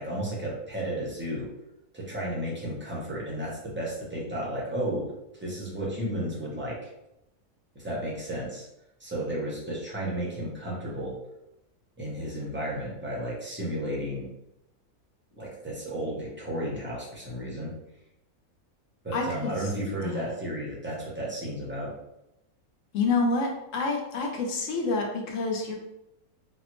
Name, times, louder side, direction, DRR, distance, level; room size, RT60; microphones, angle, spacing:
voice 1, 0.0-1.5 1.9-5.1 5.4-6.9 7.7-8.7 9.0-11.1 12.0-14.3 15.3-17.7 19.0-21.9, right 1 dB, 15° right, -5 dB, 0.4 m, -33 dB
voice 2, 19.1-19.5 19.8-20.2 22.9-25.7, left 3 dB, 65° left, 1 dB, 0.9 m, -28 dB
4.0 x 2.0 x 3.0 m, 0.88 s
omnidirectional pair, 1.6 m